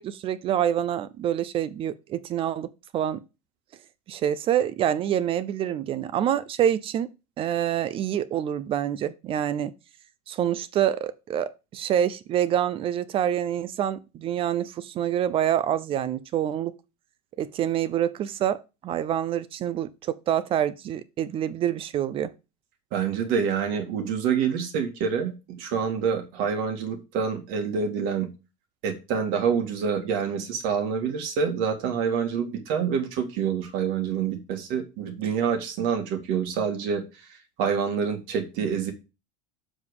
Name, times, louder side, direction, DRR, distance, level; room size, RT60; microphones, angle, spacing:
voice 1, 0.0-3.2 4.1-7.1 7.4-9.7 10.3-16.7 17.4-22.3, right 10 dB, 30° right, 0.5 m, -26 dB
voice 2, 22.9-28.3 28.8-37.0 37.6-38.9, right 6 dB, 60° right, 1.9 m, -27 dB
7.3 x 5.2 x 4.8 m
supercardioid pair, 150°, 17 cm